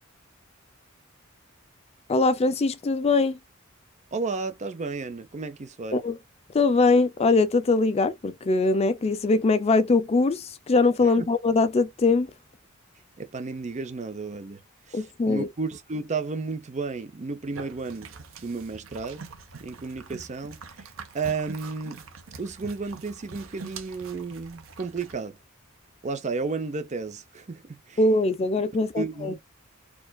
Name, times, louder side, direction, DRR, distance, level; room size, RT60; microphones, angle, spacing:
voice 1, 2.1-3.4 5.9-6.2 6.5-12.3 14.9-15.5 28.0-29.3, left 3 dB, 30° left, 0.4 m, -22 dB
voice 2, 4.1-6.0 11.0-11.3 13.2-14.6 14.9-19.2 19.6-20.9 21.1-22.0 22.4-25.4 26.0-28.0 29.0-29.4, right 4 dB, 35° right, 0.6 m, -33 dB
sound 1, 17.4-25.1, right 4 dB, 70° right, 0.7 m, -44 dB
4.4 x 2.4 x 2.3 m
head